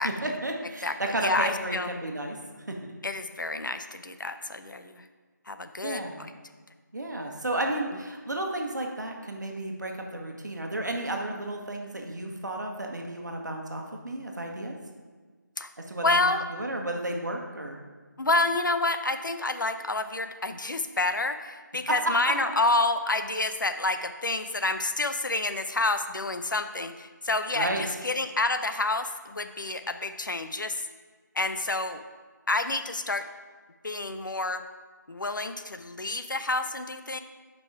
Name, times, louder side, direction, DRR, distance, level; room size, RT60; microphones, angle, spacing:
voice 1, 0.0-2.8 5.8-6.2 6.9-14.8 15.8-17.8 22.0-22.1 27.5-27.8, right 1 dB, 65° right, 2 dB, 1.2 m, -32 dB
voice 2, 1.2-1.9 3.0-5.0 5.5-6.0 15.6-15.7 16.0-16.4 18.2-30.8 31.3-32.0 32.5-33.3 33.8-34.6 35.1-37.2, left 2 dB, 80° left, 9 dB, 0.6 m, -28 dB
7.2 x 5.4 x 4.6 m, 1.4 s
figure-of-eight pair, 180°, 10 cm